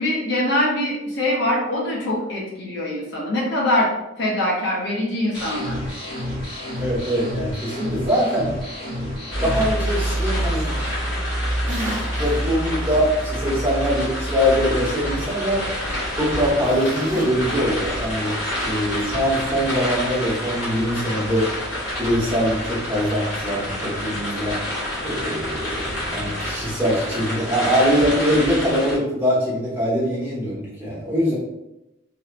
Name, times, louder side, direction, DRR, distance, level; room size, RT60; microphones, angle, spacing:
voice 1, 0.0-3.9 4.2-5.8, left 1 dB, 60° left, -3 dB, 0.6 m, -23 dB
sound 1, 5.3-9.7, left 1 dB, 30° left, 0.9 m, -30 dB
voice 2, 6.8-8.5 9.4-11.0 12.2-15.7 16.2-18.4 18.6-21.5 22.0-24.6 25.0-31.4, equal, 10° right, -8 dB, 0.9 m, -23 dB
sound 2, 9.3-29.0, equal, 85° left, 1.3 m, -27 dB
sound 3, 11.7-12.4 12.8-12.9 16.6-17.3, right 1 dB, 45° right, 0.6 m, -32 dB
2.8 x 2.0 x 2.4 m, 0.90 s
head